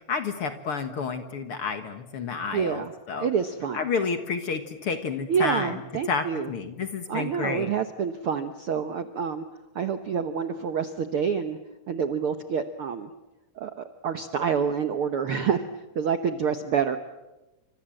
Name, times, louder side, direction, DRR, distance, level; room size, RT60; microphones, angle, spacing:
voice 1, 0.1-3.3 3.7-5.7 6.1-7.7, left 5 dB, 50° left, 8 dB, 2.0 m, -30 dB
voice 2, 2.5-2.9 3.2-3.8 5.3-6.5 7.1-9.4 9.7-11.6 11.9-13.1 13.6-15.7 15.9-17.0, right 7 dB, 65° right, 9 dB, 1.4 m, -27 dB
29.5 x 26.0 x 7.8 m, 1.0 s
omnidirectional pair, 3.8 m